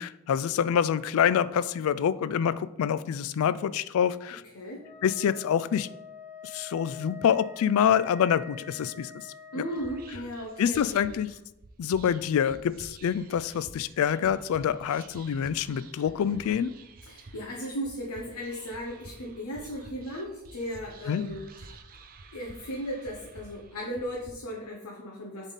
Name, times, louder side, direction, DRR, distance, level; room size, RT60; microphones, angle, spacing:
voice 1, 0.0-4.4 5.0-5.9 6.4-9.1 9.6-9.7 10.6-11.3 11.8-16.7 21.1-21.2, left 8 dB, 70° left, 16 dB, 0.3 m, -26 dB
Wind instrument woodwind instrument, 4.8-10.1, left 6 dB, 35° left, 0.7 m, -46 dB
voice 2, 9.5-11.1 17.0-21.8 22.3-25.5, equal, 90° left, -1 dB, 0.9 m, -36 dB
Whispering, 9.7-24.3, right 3 dB, 40° right, 0.5 m, -50 dB
7.0 x 3.6 x 4.1 m, 0.88 s
head